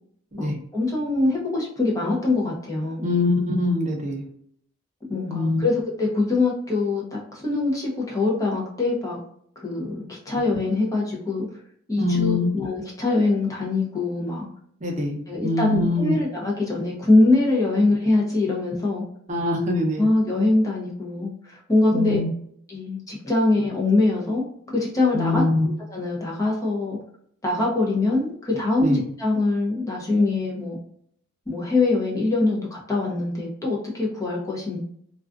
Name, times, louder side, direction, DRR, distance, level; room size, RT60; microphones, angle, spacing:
voice 1, 0.4-3.1 5.1-9.2 9.6-11.5 11.9-14.5 15.3-19.0 20.0-22.2 22.7-27.0 27.4-30.8 31.5-34.8, left 2 dB, 15° left, -3 dB, 0.6 m, -23 dB
voice 2, 3.0-4.2 5.3-5.6 12.0-12.5 14.8-16.2 19.3-20.1 21.9-22.3 25.1-25.7 28.8-29.0, left 2 dB, 35° right, 0 dB, 0.6 m, -23 dB
2.4 x 2.3 x 2.4 m, 0.66 s
head